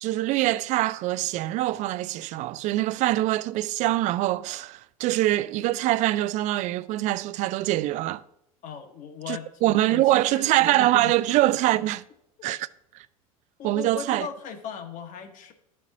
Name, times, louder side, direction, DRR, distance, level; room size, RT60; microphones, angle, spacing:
voice 1, 0.0-8.2 9.3-12.0 12.4-12.7 13.6-14.3, right 16 dB, 40° right, 0.4 m, -24 dB
voice 2, 8.6-9.5 9.9-11.1 13.6-15.5, left 7 dB, 45° left, 1.2 m, -38 dB
12.5 x 4.3 x 2.7 m
figure-of-eight pair, 75°, 18 cm